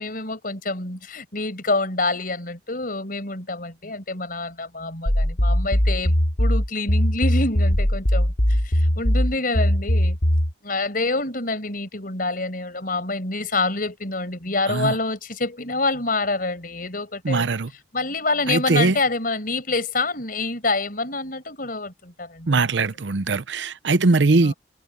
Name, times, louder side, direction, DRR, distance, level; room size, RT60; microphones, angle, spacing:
voice 1, 0.0-10.2 10.6-17.6 17.9-22.7 24.4-24.5, left 3 dB, 50° left, 5.7 m, -27 dB
sound 1, 5.1-10.5, equal, 70° left, 3.4 m, -20 dB
voice 2, 17.2-17.7 18.5-19.0 22.5-24.5, right 3 dB, 75° right, 0.7 m, -20 dB
head